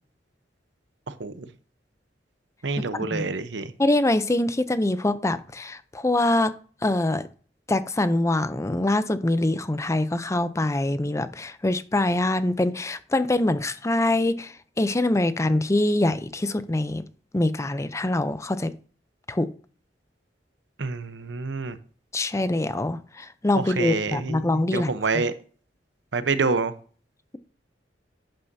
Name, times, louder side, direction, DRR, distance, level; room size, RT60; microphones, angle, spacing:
voice 1, 1.1-1.5 2.6-3.7 20.8-21.8 23.6-25.3 26.1-26.7, right 4 dB, 85° right, 0.8 m, -27 dB
voice 2, 2.9-3.3 3.8-6.5 6.8-7.2 7.7-17.0 17.3-18.7 19.3-19.5 22.1-25.2, left 2 dB, 15° left, 0.5 m, -24 dB
11.0 x 9.0 x 2.7 m
head